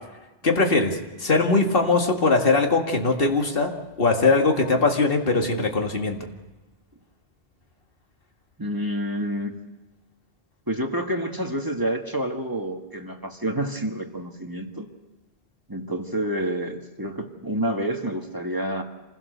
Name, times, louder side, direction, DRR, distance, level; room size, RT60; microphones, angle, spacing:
voice 1, 0.4-3.7 4.0-6.2, left 3 dB, 55° left, 2 dB, 2.2 m, -21 dB
voice 2, 8.6-9.5 10.7-14.9 15.7-18.8, right 1 dB, 20° right, 3 dB, 1.5 m, -28 dB
26.5 x 16.0 x 6.7 m, 1.1 s
omnidirectional pair, 1.2 m